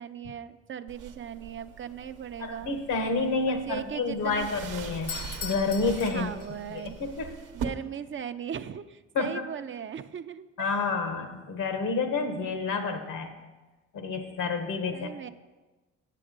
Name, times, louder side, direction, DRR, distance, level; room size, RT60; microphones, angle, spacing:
voice 1, 0.0-2.8 3.5-4.5 6.1-6.9 7.5-10.8 14.9-15.3, right 8 dB, 40° right, 10 dB, 0.5 m, -38 dB
sound 1, 0.9-7.6, right 8 dB, 80° right, 0.9 m, -42 dB
voice 2, 2.4-6.3 6.7-7.3 9.1-9.4 10.6-13.3 13.9-15.1, left 4 dB, 75° left, 7 dB, 1.3 m, -29 dB
Doorbell, 4.9-6.9, left 7 dB, 50° left, 0.5 m, -40 dB
8.4 x 7.8 x 5.3 m, 1.2 s
cardioid pair, 90°, 30 cm